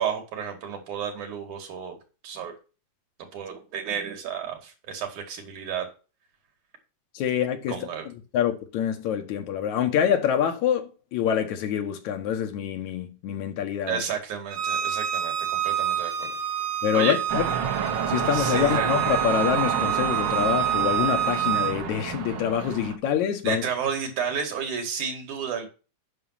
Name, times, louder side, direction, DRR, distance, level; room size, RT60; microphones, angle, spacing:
voice 1, 0.0-2.0 2.2-2.5 3.3-5.9 7.7-8.1 13.9-16.3 16.9-17.2 18.3-18.9 23.4-25.7, right 7 dB, 85° right, 3.7 m, -31 dB
voice 2, 7.1-7.8 8.1-14.0 16.8-17.4 18.1-23.6, left 9 dB, 75° left, 2.6 m, -26 dB
Bowed string instrument, 14.5-21.7, right 10 dB, 45° right, 1.8 m, -27 dB
sound 1, 17.3-23.0, right 7 dB, 60° right, 1.2 m, -29 dB
9.5 x 6.2 x 5.7 m
omnidirectional pair, 3.4 m